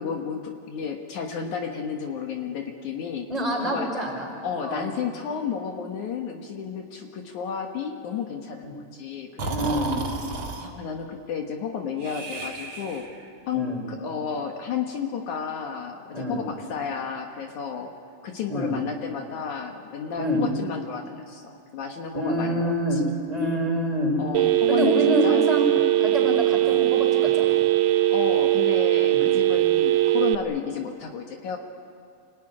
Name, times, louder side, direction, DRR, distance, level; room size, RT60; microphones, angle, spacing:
voice 1, 0.0-3.3 3.6-3.9 4.4-9.8 10.6-13.1 13.5-17.9 18.2-23.0 24.2-24.9 25.2-26.0 28.1-31.6, left 6 dB, 70° left, 3 dB, 2.8 m, -32 dB
voice 2, 3.3-4.3 4.6-4.9 8.6-8.7 9.5-10.0 13.5-13.8 16.1-16.4 18.5-18.7 20.2-20.5 22.1-23.0 23.3-24.1 24.7-25.7 26.0-27.6 29.0-29.3, equal, 10° right, -1 dB, 4.9 m, -26 dB
Breathing, 9.4-10.7 12.0-13.2, right 3 dB, 40° right, 2.7 m, -33 dB
Telephone, 24.3-30.4, right 15 dB, 85° right, 2.4 m, -20 dB
27.0 x 18.5 x 9.9 m, 2.4 s
omnidirectional pair, 3.7 m